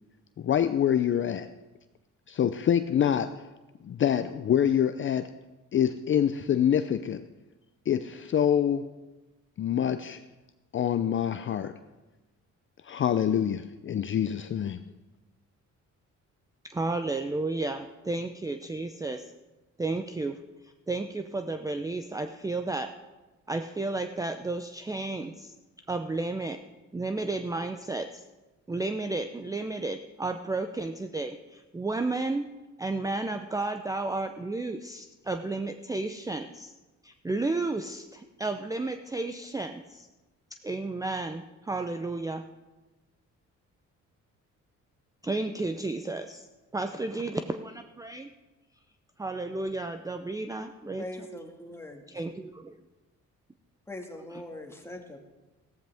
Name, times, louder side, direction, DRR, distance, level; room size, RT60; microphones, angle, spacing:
voice 1, 0.4-1.5 2.3-3.5 3.8-5.3 5.7-7.2 7.9-8.9 9.6-10.2 10.7-11.8 12.8-14.8, left 9 dB, 40° left, 10 dB, 0.5 m, -26 dB
voice 2, 16.6-19.2 19.8-20.4 20.9-22.9 23.5-25.5 25.9-26.6 26.9-28.2 28.7-32.5 32.8-36.7 37.0-40.1 40.6-42.4 45.2-46.5 46.7-48.3 49.2-51.0 52.1-52.3, right 2 dB, 10° right, 7 dB, 0.5 m, -32 dB
voice 3, 51.0-52.0 53.9-55.2, left 1 dB, 10° left, 2 dB, 1.8 m, -41 dB
15.0 x 13.0 x 3.5 m, 1.1 s
cardioid pair, 90°, 30 cm